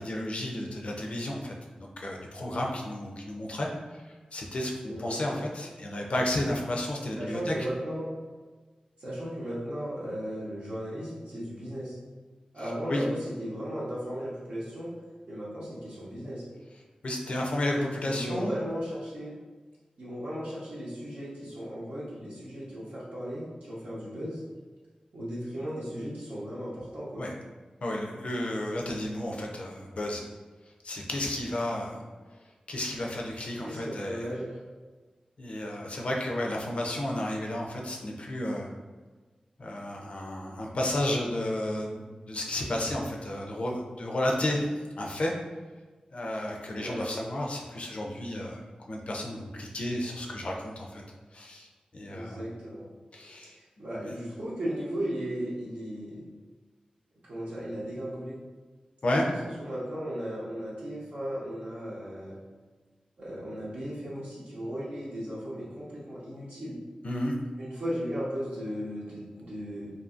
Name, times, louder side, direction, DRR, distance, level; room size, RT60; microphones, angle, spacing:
voice 1, 0.0-3.7 3.9-4.0 4.3-7.5 12.9-13.0 17.0-18.5 27.2-27.3 27.8-30.2 30.8-32.0 32.7-34.3 35.4-38.7 39.6-44.6 45.0-45.3 46.1-48.6 48.9-51.0 51.3-51.7 51.9-52.5 53.1-53.6 53.9-54.1 59.0-59.2 67.0-67.4, left 1 dB, 55° left, 0 dB, 0.4 m, -32 dB
voice 2, 4.9-5.4 7.2-8.1 9.0-12.0 12.5-14.9 15.3-16.4 18.0-19.3 20.0-24.4 25.1-27.2 33.6-34.6 46.8-47.0 52.1-52.9 53.8-56.2 57.3-58.4 59.2-59.3 59.6-62.4 63.2-66.8 67.6-69.9, equal, 80° right, -10 dB, 0.8 m, -36 dB
2.6 x 2.5 x 2.4 m, 1.3 s
wide cardioid pair, 75°, 2 cm